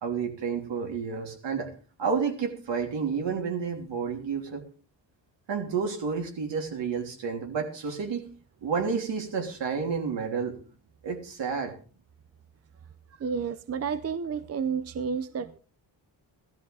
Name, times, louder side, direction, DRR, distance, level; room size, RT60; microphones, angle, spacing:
voice 1, 0.0-1.7 2.0-4.6 5.5-8.2 8.6-10.5 11.0-11.7, right 5 dB, 70° right, 3.3 m, -30 dB
voice 2, 13.2-15.6, right 6 dB, 35° right, 0.6 m, -31 dB
16.5 x 13.0 x 3.5 m
cardioid pair, 130°, 46 cm